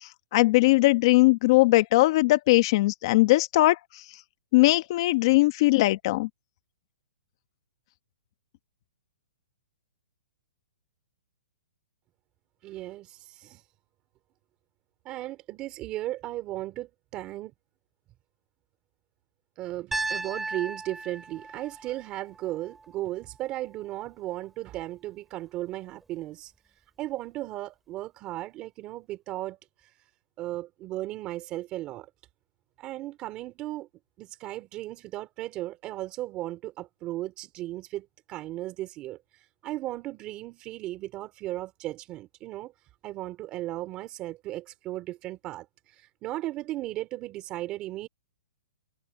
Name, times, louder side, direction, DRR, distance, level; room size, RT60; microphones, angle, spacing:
voice 1, 0.3-3.8 4.5-6.3, left 19 dB, 40° left, 1.2 m, -20 dB
voice 2, 12.6-13.6 15.0-17.5 19.6-26.5 27.0-29.9 30.4-32.1 32.8-33.9 34.2-42.7 43.0-48.1, right 15 dB, 25° right, 2.7 m, -36 dB
Piano, 19.9-24.0, right 3 dB, 5° right, 3.6 m, -37 dB
hypercardioid pair, 160°, 4 cm